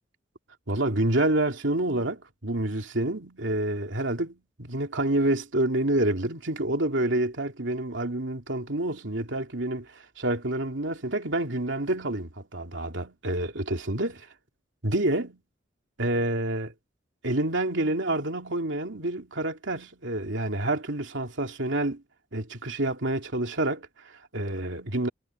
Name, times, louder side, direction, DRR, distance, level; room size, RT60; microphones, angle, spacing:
voice 1, 0.7-14.3 14.8-15.4 16.0-16.7 17.2-22.0 22.3-25.1, right 1 dB, 75° right, 2.7 m, -28 dB
head